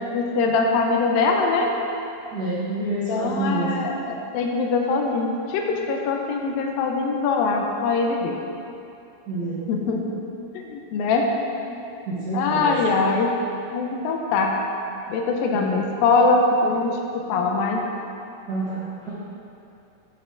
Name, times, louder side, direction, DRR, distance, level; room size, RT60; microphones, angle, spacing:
voice 1, 0.0-1.7 3.1-8.4 9.7-10.2 10.5-11.3 11.7-11.8 12.3-13.3 13.7-14.6 15.1-17.9, left 3 dB, 80° left, 1 dB, 2.4 m, -22 dB
voice 2, 2.3-3.7 9.3-9.6 12.0-12.7 15.3-15.7 18.5-19.1, right 2 dB, 70° right, -11 dB, 0.9 m, -28 dB
9.3 x 5.7 x 3.7 m, 2.7 s
omnidirectional pair, 4.1 m